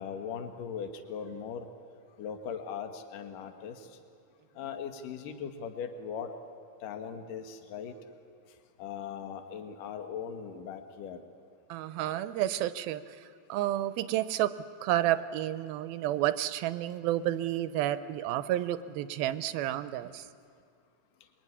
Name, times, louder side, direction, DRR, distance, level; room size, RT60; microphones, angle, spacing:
voice 1, 0.0-1.7 2.2-4.0 4.5-6.3 6.8-8.0 8.8-11.2, left 7 dB, 65° left, 6 dB, 3.0 m, -39 dB
voice 2, 11.7-13.2 13.5-14.5 14.8-20.3, right 13 dB, 85° right, 13 dB, 2.7 m, -30 dB
25.5 x 23.0 x 9.7 m, 2.2 s
omnidirectional pair, 4.2 m